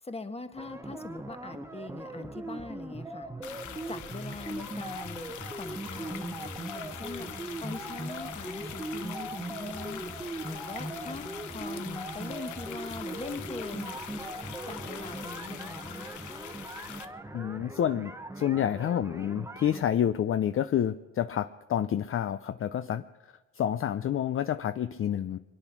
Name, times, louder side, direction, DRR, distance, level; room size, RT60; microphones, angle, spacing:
voice 1, 0.0-3.3 3.9-7.3 7.6-14.0 14.6-16.3, left 3 dB, 20° left, 8 dB, 1.4 m, -42 dB
sound 1, 0.6-19.8, right 2 dB, 10° right, 0.9 m, -40 dB
sound 2, 3.4-17.0, left 10 dB, 75° left, 1.0 m, -43 dB
voice 2, 17.3-23.0 23.5-25.4, left 10 dB, 45° left, 11 dB, 0.5 m, -29 dB
22.5 x 10.0 x 6.0 m, 1.2 s
cardioid pair, 90°, 30 cm